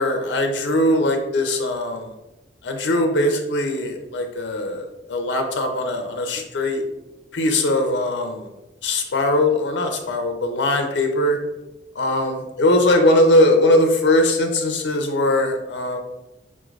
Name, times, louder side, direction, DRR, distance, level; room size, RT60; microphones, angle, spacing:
voice 1, 0.0-2.1 2.6-6.8 7.3-8.5 8.8-11.4 11.9-16.0, left 1 dB, 90° left, 4 dB, 0.5 m, -20 dB
5.4 x 3.2 x 2.4 m, 1.0 s
head